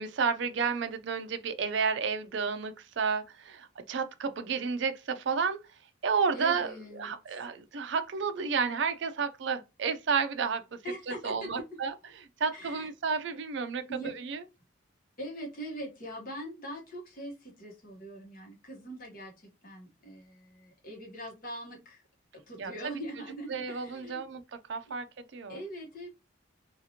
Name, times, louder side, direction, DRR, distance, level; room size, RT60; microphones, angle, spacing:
voice 1, 0.0-5.6 6.0-10.6 11.1-11.9 12.4-14.4 22.6-22.7 23.5-24.4 24.7-25.6, right 5 dB, 60° right, 0.4 m, -31 dB
voice 2, 6.3-7.4 10.8-11.7 12.5-12.9 13.9-14.1 15.2-22.0 22.3-24.2 24.8-24.9 25.5-26.1, equal, 40° left, 1.0 m, -42 dB
2.8 x 2.4 x 2.7 m
head